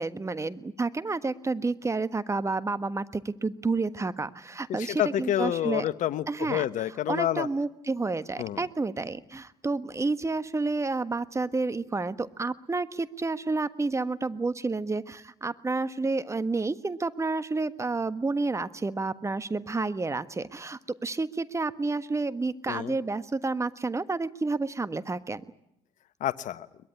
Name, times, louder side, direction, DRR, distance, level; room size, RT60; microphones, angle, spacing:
voice 1, 0.0-5.8 6.3-6.6 7.1-25.4, right 3 dB, 20° right, 13 dB, 1.4 m, -30 dB
voice 2, 4.8-7.5 8.4-8.6 22.7-22.9 26.2-26.7, left 12 dB, 50° left, 15 dB, 1.2 m, -28 dB
22.5 x 21.0 x 9.9 m, 0.79 s
hypercardioid pair, 60°, 16 cm